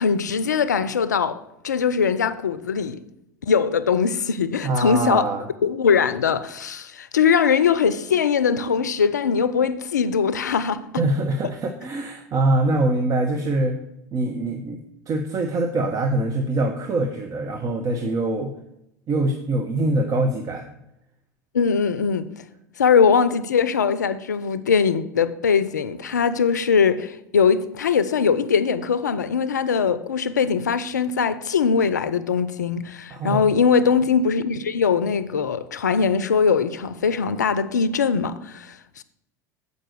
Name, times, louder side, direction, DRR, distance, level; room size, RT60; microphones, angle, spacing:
voice 1, 0.0-3.0 3.4-5.2 5.6-10.8 21.5-22.4 22.8-39.0, left 6 dB, 85° left, 0.4 m, -21 dB
voice 2, 4.6-5.5 11.0-13.8 14.1-14.8 15.1-18.5 19.1-20.7 33.1-33.4, right 2 dB, 40° right, 0.9 m, -23 dB
7.6 x 5.3 x 6.5 m
hypercardioid pair, 80°, 9 cm